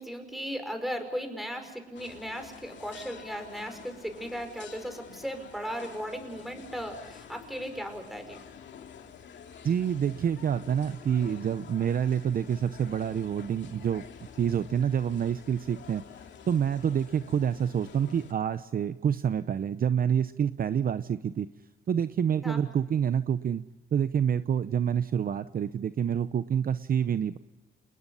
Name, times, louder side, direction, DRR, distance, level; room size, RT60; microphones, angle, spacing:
voice 1, 0.0-8.4 22.4-22.6, equal, ahead, 6 dB, 5.5 m, -37 dB
sound 1, 1.9-18.3, left 8 dB, 65° left, 2.3 m, -49 dB
voice 2, 9.6-14.0 14.4-16.0 16.5-21.5 21.9-23.6 23.9-27.4, right 8 dB, 45° right, 12 dB, 0.7 m, -27 dB
28.5 x 20.5 x 5.6 m, 1.1 s
cardioid pair, 90°, 20 cm